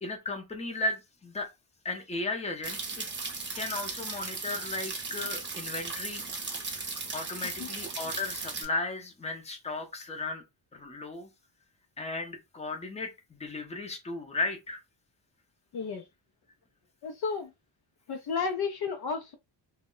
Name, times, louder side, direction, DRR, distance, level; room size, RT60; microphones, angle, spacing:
voice 1, 0.0-1.5 1.8-3.1 3.5-6.2 6.6-10.4 10.7-11.3 12.0-14.8, left 2 dB, 15° left, 0.6 m, -35 dB
sound 1, 2.6-8.6, right 4 dB, 25° right, 0.6 m, -37 dB
voice 2, 15.7-16.0 17.0-17.5 18.1-19.3, left 5 dB, 55° left, 0.5 m, -32 dB
2.1 x 2.0 x 3.7 m
wide cardioid pair, 135°, 46 cm